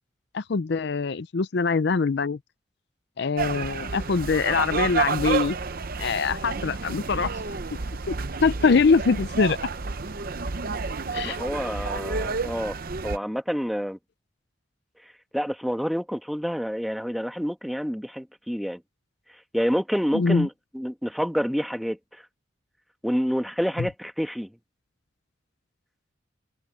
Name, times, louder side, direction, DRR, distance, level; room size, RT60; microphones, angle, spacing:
voice 1, 0.3-2.4 3.2-5.6 6.0-7.3 8.1-9.6 11.1-11.4 20.1-20.5 23.8-23.9, left 4 dB, 60° left, 0.5 m, -23 dB
sound 1, 3.4-13.2, right 4 dB, 50° right, 0.7 m, -30 dB
voice 2, 11.2-12.8 13.0-14.0 15.3-18.8 19.5-22.2 23.0-24.5, equal, ahead, 1.2 m, -28 dB
head